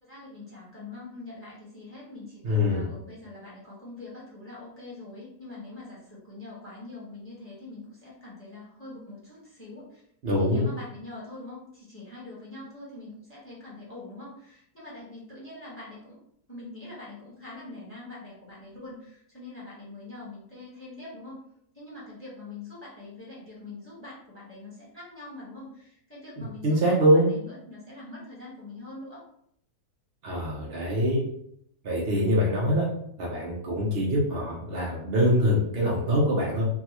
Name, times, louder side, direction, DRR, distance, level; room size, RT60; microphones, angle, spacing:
voice 1, 0.0-16.2 16.5-21.4 21.7-26.9 27.3-29.2, left 2 dB, 10° left, -6 dB, 0.9 m, -43 dB
voice 2, 2.4-2.9 10.2-10.7 26.4-27.3 30.2-31.2 31.8-32.9 33.2-36.6, equal, 65° right, -4 dB, 0.5 m, -24 dB
3.6 x 2.3 x 2.9 m, 0.70 s
omnidirectional pair, 2.0 m